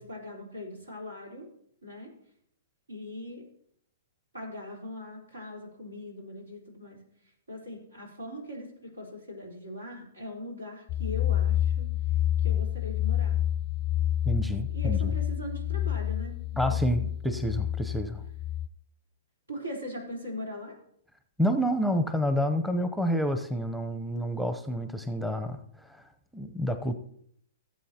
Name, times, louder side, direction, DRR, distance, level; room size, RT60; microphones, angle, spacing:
voice 1, 0.0-1.5 1.8-2.1 2.9-3.5 4.3-7.0 7.5-13.4 14.7-16.4 16.6-17.1 19.5-20.8, left 1 dB, 90° right, -1 dB, 3.9 m, -40 dB
sound 1, 10.9-18.7, left 11 dB, 30° left, 0.4 m, -28 dB
voice 2, 14.3-15.1 16.6-18.2 21.4-26.0 26.3-27.0, equal, ahead, 8 dB, 0.7 m, -29 dB
17.0 x 7.6 x 2.9 m, 0.69 s
hypercardioid pair, 120°, 0 cm